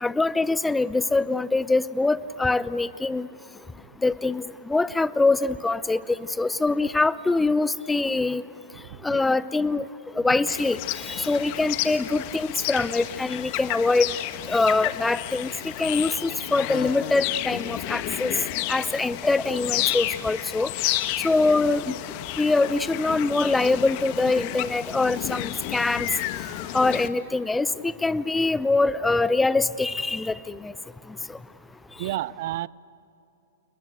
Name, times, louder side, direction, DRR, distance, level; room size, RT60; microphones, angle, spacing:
voice 1, 0.0-3.3 4.0-8.4 9.0-9.9 10.2-10.8 11.1-14.1 14.5-15.5 15.8-18.3 18.7-20.7 21.2-22.0 22.4-26.1 26.7-30.7, left 3 dB, 10° left, 17 dB, 0.7 m, -24 dB
voice 2, 8.7-9.2 32.0-32.7, right 15 dB, 55° right, 21 dB, 0.6 m, -31 dB
sound 1, 10.5-27.1, left 15 dB, 45° left, 1.4 m, -31 dB
29.0 x 21.5 x 8.0 m, 2.8 s
hypercardioid pair, 120°, 0 cm